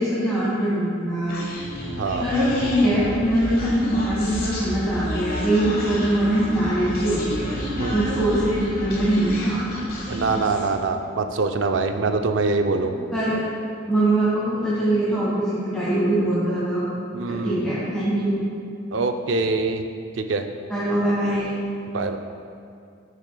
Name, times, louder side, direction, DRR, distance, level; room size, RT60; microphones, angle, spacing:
voice 1, 0.0-1.4 2.2-7.5 7.9-9.6 10.3-10.7 12.8-13.4 13.9-16.8 17.3-18.4 20.7-21.5, right 1 dB, 5° left, -11 dB, 1.6 m, -22 dB
Human voice, 1.3-10.8, left 1 dB, 50° left, 1.6 m, -31 dB
voice 2, 7.8-8.1 10.1-12.9 16.9-17.7 18.9-19.9 20.2-20.4 21.9-22.2, right 3 dB, 85° right, 6 dB, 0.5 m, -24 dB
13.0 x 6.6 x 2.3 m, 2.4 s
head